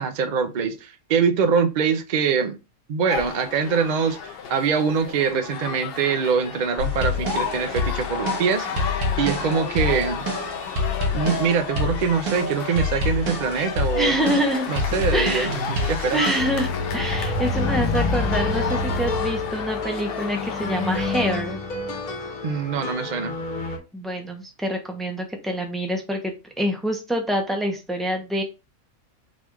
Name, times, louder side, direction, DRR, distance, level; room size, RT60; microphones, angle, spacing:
voice 1, 0.0-2.6 2.9-10.3 11.1-14.4 14.7-16.2 22.4-23.3, right 6 dB, 65° right, 0.4 m, -24 dB
sound 1, 3.1-21.3, left 6 dB, 60° left, 0.6 m, -32 dB
sound 2, 6.8-16.4, left 2 dB, 85° right, 1.5 m, -27 dB
voice 2, 14.0-14.8 15.1-15.5 16.1-21.6 23.9-28.4, equal, ahead, 0.3 m, -26 dB
sound 3, 16.4-23.8, left 3 dB, 75° left, 1.3 m, -27 dB
4.2 x 2.3 x 4.4 m
omnidirectional pair, 1.5 m